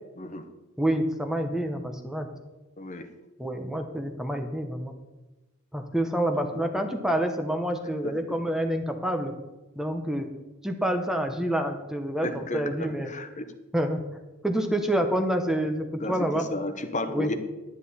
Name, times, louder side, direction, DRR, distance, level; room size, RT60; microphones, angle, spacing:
voice 1, 0.8-2.3 3.4-5.0 5.7-9.3 9.8-10.3 10.6-13.1 13.7-14.0 14.4-16.5 17.1-17.3, right 1 dB, 5° right, 5 dB, 0.9 m, -27 dB
voice 2, 2.8-3.1 6.5-6.6 8.0-8.4 12.2-12.7 13.1-13.5 16.0-17.3, left 1 dB, 35° left, 9 dB, 1.0 m, -33 dB
11.5 x 10.0 x 4.2 m, 1.1 s
head